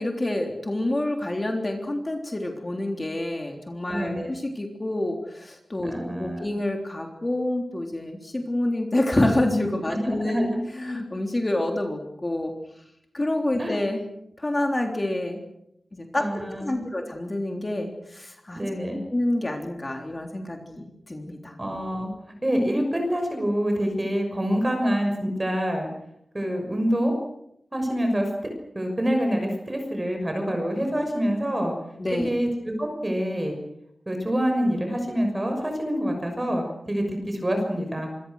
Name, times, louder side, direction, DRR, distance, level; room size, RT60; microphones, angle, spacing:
voice 1, 0.0-5.9 6.2-12.5 13.1-14.0 14.4-15.4 15.9-18.6 19.1-21.5 32.0-32.3, left 1 dB, 20° left, 3 dB, 3.5 m, -27 dB
voice 2, 3.9-4.3 5.8-6.5 9.9-10.6 13.6-13.8 16.2-16.8 18.5-19.0 21.6-25.9 26.3-27.1 27.7-28.3 28.7-31.7 32.1-33.6 34.1-38.1, equal, 20° right, 3 dB, 6.2 m, -26 dB
27.0 x 25.0 x 6.5 m, 0.78 s
wide cardioid pair, 125°, 0 cm